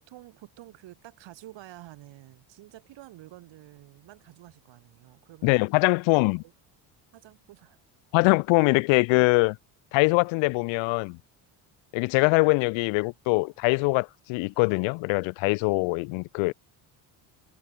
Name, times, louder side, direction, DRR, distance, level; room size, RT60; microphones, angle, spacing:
voice 1, 0.0-5.7 6.4-6.5 7.1-7.8, right 16 dB, 75° right, 4.3 m, -49 dB
voice 2, 5.4-6.4 8.1-9.6 9.9-11.2 11.9-16.5, left 28 dB, 85° left, 0.5 m, -23 dB
cardioid pair, 90°, 45 cm